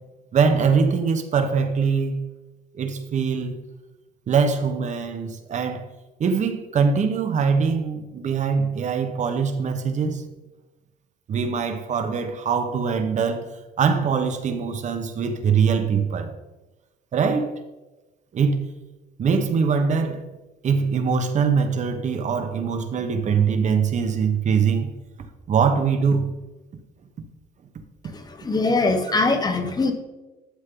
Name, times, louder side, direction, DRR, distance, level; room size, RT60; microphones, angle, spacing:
voice 1, 0.3-2.2 2.7-3.6 4.3-5.9 6.2-10.2 11.3-13.5 13.8-16.3 17.1-17.5 18.3-18.7 19.2-20.3 20.6-24.9 25.5-26.3, right 6 dB, 45° right, 1.3 m, -22 dB
voice 2, 28.1-29.9, left 3 dB, 25° left, 1.2 m, -22 dB
11.5 x 7.3 x 3.9 m
cardioid pair, 110°, 17 cm